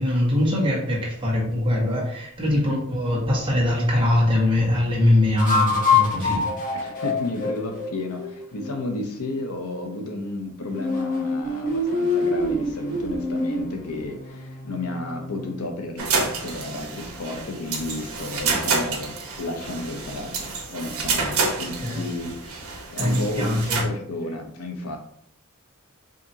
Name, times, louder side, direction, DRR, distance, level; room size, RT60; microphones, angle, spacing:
voice 1, 0.0-6.4 21.8-22.0 23.0-23.8, left 1 dB, 25° right, -5 dB, 1.5 m, -22 dB
voice 2, 2.5-2.8 6.7-25.0, left 2 dB, 80° left, 3 dB, 0.7 m, -32 dB
sound 1, 3.0-3.2 5.4-8.8 10.7-15.6, left 3 dB, 40° left, 1.0 m, -25 dB
sound 2, 16.0-23.8, right 4 dB, 70° right, 1.1 m, -28 dB
5.0 x 2.8 x 2.8 m, 0.70 s
head